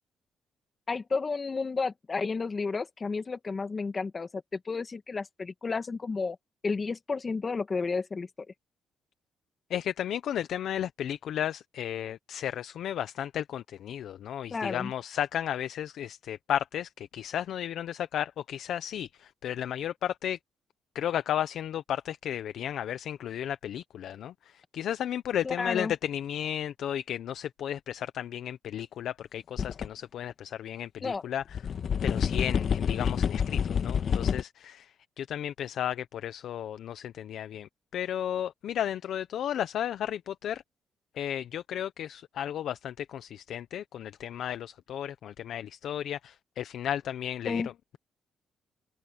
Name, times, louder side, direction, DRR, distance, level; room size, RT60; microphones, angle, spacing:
voice 1, 0.9-6.4 6.6-8.3 14.5-14.9 25.4-25.9 31.0-31.2 47.5-47.7, left 4 dB, 35° left, 2.1 m, -32 dB
voice 2, 9.7-20.4 20.9-31.4 32.0-40.6 41.1-48.0, left 10 dB, 70° left, 0.8 m, -34 dB
sound 1, 29.6-29.9 30.3-30.4 31.5-34.4, left 7 dB, 55° left, 1.5 m, -28 dB
cardioid pair, 90°, 0 cm